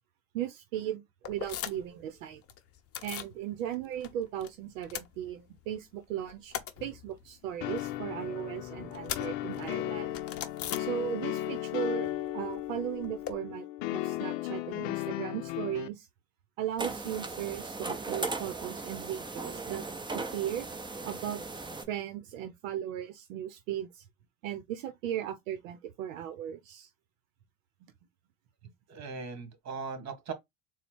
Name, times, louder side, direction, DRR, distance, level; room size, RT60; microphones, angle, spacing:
voice 1, 0.3-2.4 3.0-6.5 6.8-10.1 10.8-16.1 16.6-19.9 20.1-20.7 21.0-21.4 21.9-24.0 24.4-26.9 28.6-28.7, right 10 dB, 80° right, 0.8 m, -37 dB
sound 1, 1.2-2.0 2.3-3.4 3.7-4.5 4.7-5.8 6.1-11.5 11.7-13.3, left 10 dB, 35° left, 0.7 m, -41 dB
sound 2, 7.6-15.9, left 14 dB, 75° left, 0.6 m, -35 dB
sound 3, 16.8-21.8, right 3 dB, 10° right, 0.7 m, -38 dB
voice 2, 28.9-30.3, right 5 dB, 45° right, 1.6 m, -39 dB
4.0 x 2.2 x 4.3 m
supercardioid pair, 95°, 39 cm